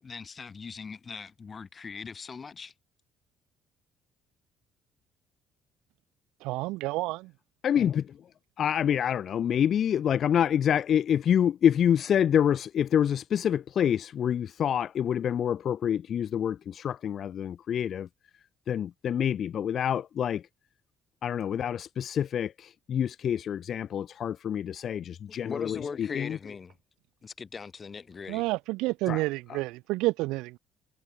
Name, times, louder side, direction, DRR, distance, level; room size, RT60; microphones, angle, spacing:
voice 1, 0.0-2.7 25.3-26.7 27.2-28.4, left 5 dB, 35° left, 2.0 m, -40 dB
voice 2, 6.4-7.3 28.3-30.6, right 21 dB, 85° right, 0.5 m, -29 dB
voice 3, 7.6-8.2 8.6-18.1 18.7-20.4 21.2-26.4 29.1-29.2 29.5-29.6, left 9 dB, 55° left, 0.4 m, -27 dB
cardioid pair, 90°, 0 cm